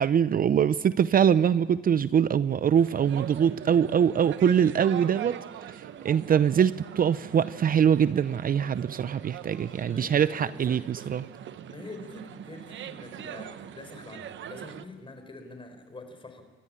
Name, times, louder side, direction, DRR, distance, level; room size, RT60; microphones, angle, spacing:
voice 1, 0.0-5.4 6.0-11.2, right 8 dB, 45° right, 0.6 m, -23 dB
sound 1, 2.7-14.8, right 10 dB, 70° right, 1.0 m, -42 dB
voice 2, 9.9-11.1 11.7-16.4, left 2 dB, 25° left, 4.5 m, -45 dB
28.5 x 14.0 x 8.7 m
cardioid pair, 90°, 20 cm